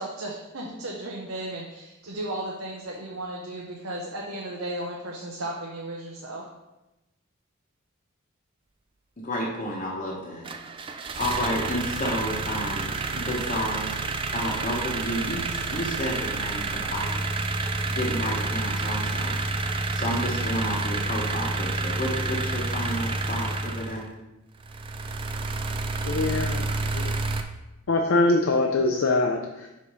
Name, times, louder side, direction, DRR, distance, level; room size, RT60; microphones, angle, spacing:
voice 1, 0.0-6.5, right 1 dB, 80° right, -2 dB, 0.8 m, -35 dB
voice 2, 9.2-10.5 10.8-13.9 14.3-17.2 17.9-19.4 19.9-24.0, equal, 35° left, -4 dB, 1.0 m, -31 dB
sound 1, 10.5-24.0 24.6-27.4, right 3 dB, 25° right, 0.3 m, -29 dB
voice 3, 26.0-27.1 27.9-29.7, left 2 dB, 70° left, 2 dB, 0.5 m, -24 dB
4.8 x 4.2 x 5.4 m, 0.99 s
head